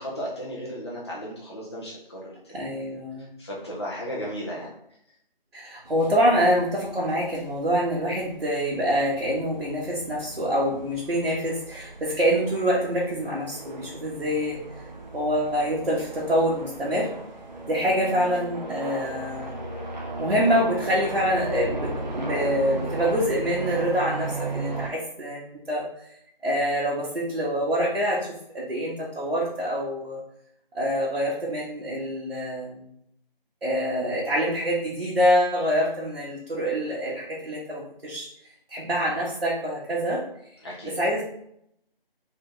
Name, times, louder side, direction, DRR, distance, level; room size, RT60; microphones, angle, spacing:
voice 1, 0.0-2.6 3.2-4.7 18.2-18.4 40.6-40.9, equal, 30° left, -5 dB, 0.8 m, -35 dB
voice 2, 2.5-3.3 5.5-14.6 15.1-17.1 17.6-19.6 20.2-25.8 26.4-30.2 30.7-32.9 33.6-38.3 38.7-40.2 40.9-41.2, equal, 75° right, -6 dB, 1.3 m, -25 dB
sound 1, 5.8-24.9, right 2 dB, 50° right, 0.8 m, -36 dB
3.4 x 3.4 x 3.8 m, 0.73 s
figure-of-eight pair, 170°, 29 cm